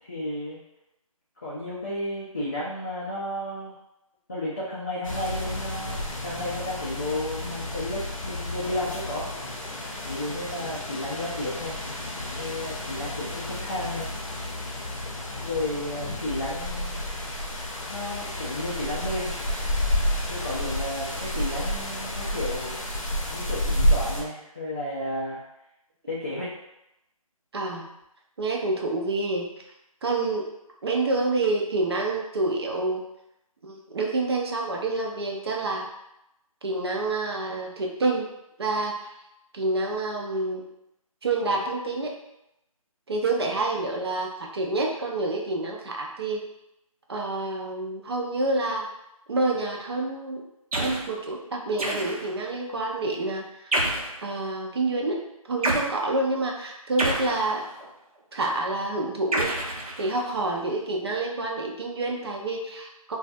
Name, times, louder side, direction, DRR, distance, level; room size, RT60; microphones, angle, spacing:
voice 1, 0.0-0.6 1.4-3.7 4.3-9.3 10.0-11.8 12.3-14.1 15.4-17.0 17.9-19.3 20.3-22.8 23.3-25.4 26.1-26.5, left 1 dB, 30° left, -8 dB, 0.3 m, -32 dB
sound 1, 5.0-24.2, left 1 dB, 60° left, 0.6 m, -30 dB
voice 2, 27.5-27.9 28.4-29.5 30.0-30.5 30.8-33.0 33.6-35.9 36.6-38.3 38.6-39.1 39.5-40.6 41.2-42.1 43.1-46.4 47.1-48.8 49.3-50.4 50.8-53.7 54.2-57.6 58.3-59.5 60.0-63.2, right 2 dB, 45° right, 0 dB, 0.5 m, -28 dB
sound 2, 50.7-51.1 51.8-52.4 53.7-54.2 55.6-55.9 57.0-57.9 59.3-60.4, right 1 dB, 70° right, 0.8 m, -28 dB
2.4 x 2.2 x 2.5 m, 0.87 s
figure-of-eight pair, 160°, 19 cm